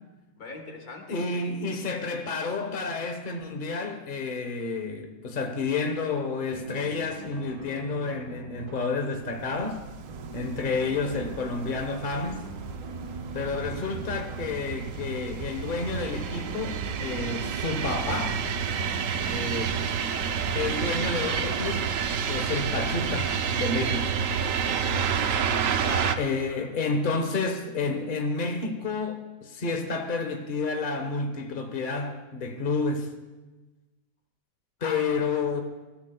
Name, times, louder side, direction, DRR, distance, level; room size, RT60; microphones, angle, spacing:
voice 1, 0.4-1.3 25.8-26.2 26.5-26.7 34.8-35.3, left 2 dB, 85° left, 2.1 m, -38 dB
voice 2, 1.1-9.8 10.3-12.4 13.3-18.5 19.3-19.8 20.5-21.9 22.3-24.2 26.2-33.1 34.8-35.6, left 4 dB, 40° left, 1.2 m, -30 dB
sound 1, 6.5-21.8, right 2 dB, 85° right, 1.7 m, -44 dB
sound 2, 9.4-26.2, right 7 dB, 65° right, 1.0 m, -30 dB
21.5 x 14.5 x 2.3 m
omnidirectional pair, 1.5 m